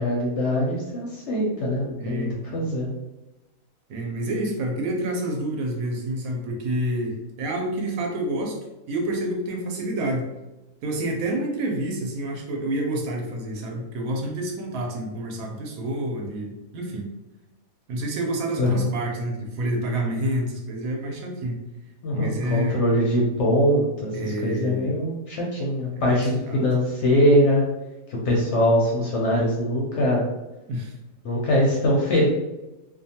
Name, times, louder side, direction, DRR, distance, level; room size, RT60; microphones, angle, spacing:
voice 1, 0.0-2.3 2.5-2.9 18.6-18.9 22.0-27.6 28.1-30.2 31.2-32.3, equal, 65° left, -2 dB, 0.7 m, -22 dB
voice 2, 2.0-2.6 3.9-8.6 8.9-10.3 10.8-17.1 17.9-21.6 22.1-22.8 24.1-24.9 25.9-26.7 30.7-30.9, right 1 dB, 75° right, 1 dB, 1.0 m, -28 dB
2.6 x 2.3 x 2.7 m, 1.0 s
omnidirectional pair, 1.6 m